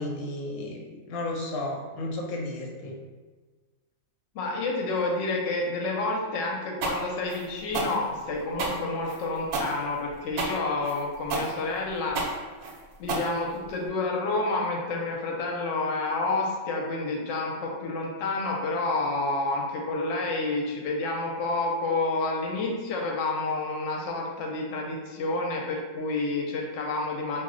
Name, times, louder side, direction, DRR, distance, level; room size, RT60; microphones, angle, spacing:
voice 1, 0.0-3.0, left 2 dB, 90° left, 0 dB, 1.0 m, -33 dB
voice 2, 4.3-12.5 13.0-27.4, left 2 dB, 70° left, 0 dB, 0.9 m, -29 dB
sound 1, 6.8-13.9, right 3 dB, 85° right, 1.0 m, -31 dB
2.5 x 2.1 x 3.7 m, 1.3 s
omnidirectional pair, 1.4 m